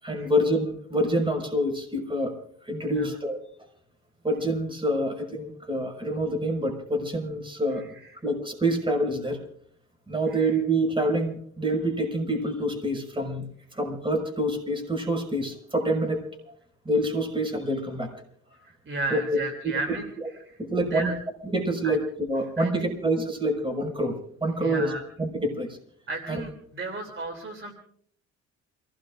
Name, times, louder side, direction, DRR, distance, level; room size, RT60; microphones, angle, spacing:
voice 1, 0.0-2.3 2.6-3.4 4.2-7.9 8.2-9.4 10.1-16.2 16.8-18.1 19.1-19.4 19.6-19.7 20.6-21.1 21.4-22.0 22.3-24.9 25.2-25.8 26.3-26.4, right 1 dB, 15° right, 3 dB, 5.7 m, -27 dB
voice 2, 18.5-20.1 20.4-20.6 20.9-21.1 21.8-22.0 22.6-23.0 24.6-25.0 26.1-27.7, right 3 dB, 40° right, 3 dB, 3.1 m, -34 dB
28.0 x 17.5 x 2.6 m, 0.62 s
cardioid pair, 90°, 30 cm